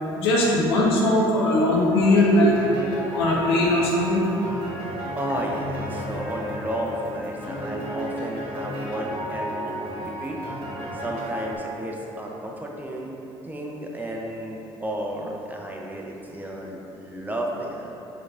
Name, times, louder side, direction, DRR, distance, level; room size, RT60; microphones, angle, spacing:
voice 1, 0.2-2.6 3.1-4.3, left 1 dB, 85° left, -3 dB, 0.6 m, -20 dB
sound 1, 2.0-11.6, equal, 45° right, 1.4 m, -33 dB
voice 2, 5.1-10.4 10.9-13.2 13.4-17.9, right 1 dB, 15° right, -1 dB, 0.5 m, -32 dB
4.4 x 2.5 x 2.4 m, 2.9 s
hypercardioid pair, 60°, 13 cm